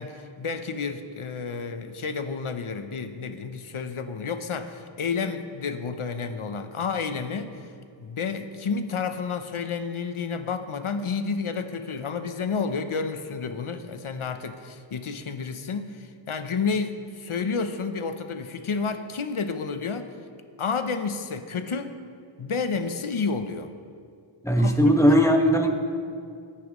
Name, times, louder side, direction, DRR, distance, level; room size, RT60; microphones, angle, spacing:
voice 1, 0.0-7.7 8.0-20.1 20.6-22.0 22.4-23.7 24.6-24.7, left 5 dB, 80° left, 8 dB, 0.9 m, -30 dB
voice 2, 24.4-25.7, equal, 5° left, 1 dB, 1.5 m, -18 dB
19.5 x 10.0 x 3.1 m, 2.3 s
wide cardioid pair, 40°, 49 cm